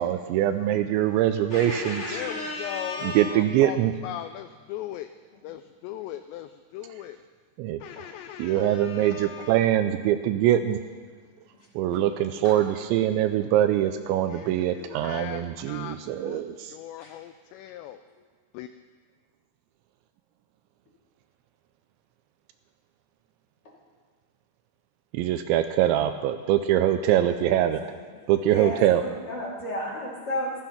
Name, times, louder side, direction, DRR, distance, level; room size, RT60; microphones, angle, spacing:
voice 1, 0.0-2.2 3.0-3.9 7.6-7.8 8.4-10.8 11.7-16.8 25.1-27.8 28.3-29.0, right 12 dB, 80° right, 9 dB, 2.7 m, -23 dB
voice 2, 1.5-3.4 12.4-12.5 17.0-17.1 28.5-28.7 29.0-30.6, left 1 dB, 35° left, -4 dB, 2.9 m, -33 dB
voice 3, 2.1-3.8 4.0-5.1 5.4-7.2 7.8-9.6 14.3-16.0 16.2-16.4 16.7-18.0 18.5-18.7, left 12 dB, 85° left, 9 dB, 2.5 m, -38 dB
15.5 x 13.5 x 5.8 m, 1.5 s
omnidirectional pair, 5.5 m